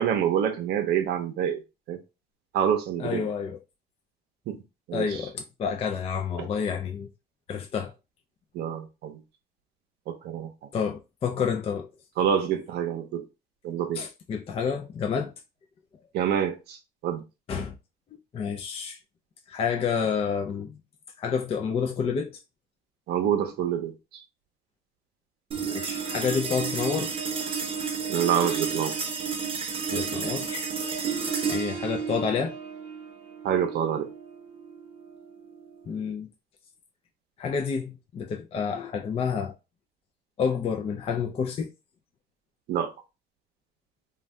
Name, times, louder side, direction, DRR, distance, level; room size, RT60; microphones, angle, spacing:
voice 1, 0.0-1.6 1.9-2.0 2.5-3.2 4.5-4.6 4.9-5.2 6.4-6.5 8.5-9.2 10.1-10.5 12.2-13.2 13.6-14.0 16.1-16.8 17.0-17.2 23.1-24.2 28.1-28.9 33.4-34.1 42.7-42.9, right 9 dB, 75° right, 0.6 m, -27 dB
voice 2, 3.0-3.6 4.9-7.1 7.5-7.9 10.7-11.9 13.9-15.3 17.5-17.7 18.3-19.0 19.5-20.8 21.2-22.3 25.6-27.1 29.9-30.6 31.5-32.5 35.9-36.3 37.4-39.5 40.4-41.7, left 6 dB, 35° left, 0.4 m, -29 dB
sound 1, 25.5-36.1, right 5 dB, 35° right, 0.8 m, -32 dB
2.5 x 2.2 x 3.2 m
cardioid pair, 110°, 17 cm